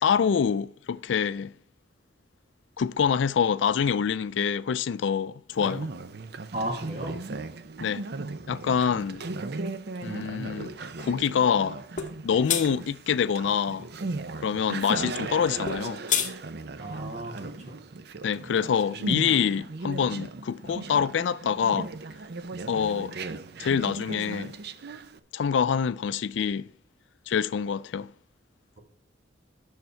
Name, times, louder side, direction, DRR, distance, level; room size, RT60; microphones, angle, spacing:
voice 1, 0.0-1.5 2.8-5.9 7.8-8.1 8.5-9.3 10.0-10.7 11.0-11.8 12.2-13.9 14.4-16.0 18.2-21.9 22.7-23.2 23.6-24.6 25.3-26.7 27.3-28.1, left 7 dB, 75° left, 0.4 m, -26 dB
Conversation, 5.5-25.2, right 3 dB, 60° right, 0.6 m, -37 dB
voice 2, 6.5-7.2 14.5-14.7 16.8-17.8, right 1 dB, 40° right, 1.6 m, -35 dB
sound 1, 12.0-12.1 12.5-12.7 15.7-16.3, left 8 dB, 45° left, 1.1 m, -26 dB
9.5 x 6.6 x 4.4 m
head